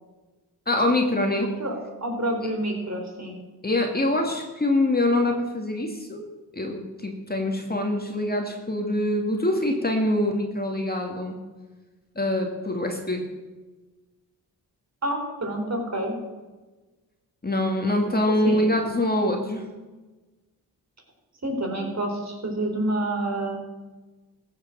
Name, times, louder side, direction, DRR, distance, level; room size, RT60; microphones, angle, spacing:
voice 1, 0.7-1.5 3.6-6.2 6.5-11.3 12.2-13.2 17.4-19.7, left 1 dB, 25° left, 2 dB, 2.4 m, -24 dB
voice 2, 2.0-3.3 15.0-16.2 18.4-18.8 21.4-23.6, right 1 dB, 40° right, 2 dB, 4.0 m, -28 dB
14.5 x 6.7 x 7.6 m, 1.2 s
supercardioid pair, 50°, 41 cm